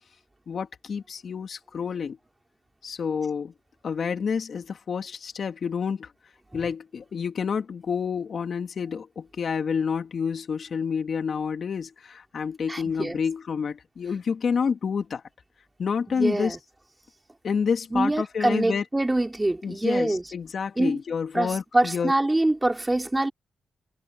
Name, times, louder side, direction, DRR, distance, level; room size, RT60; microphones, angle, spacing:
voice 1, 0.5-2.2 2.8-3.5 3.8-6.1 6.5-15.2 15.8-16.6 17.4-18.8 19.6-22.1, left 6 dB, 60° left, 2.4 m, -29 dB
voice 2, 12.7-13.2 16.1-16.6 17.9-20.3 20.8-21.0 21.3-23.3, right 2 dB, 15° right, 3.9 m, -25 dB
cardioid pair, 75°, 0 cm